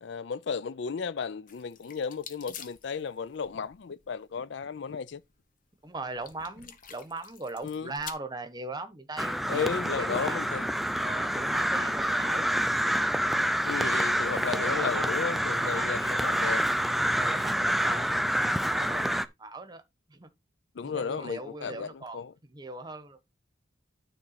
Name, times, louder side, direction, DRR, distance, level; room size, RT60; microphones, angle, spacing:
voice 1, 0.0-5.2 7.6-7.9 9.5-10.7 13.6-16.6 20.7-22.3, left 6 dB, 65° left, 0.4 m, -34 dB
sound 1, 1.5-8.1, left 8 dB, 45° left, 1.0 m, -48 dB
voice 2, 5.8-10.5 11.0-12.6 13.8-14.2 14.5-15.2 15.6-16.5 17.2-19.8 20.1-20.3 20.8-23.2, right 2 dB, 20° right, 1.1 m, -40 dB
Crow, 9.2-19.3, equal, ahead, 0.4 m, -27 dB
9.7 x 3.7 x 5.7 m
head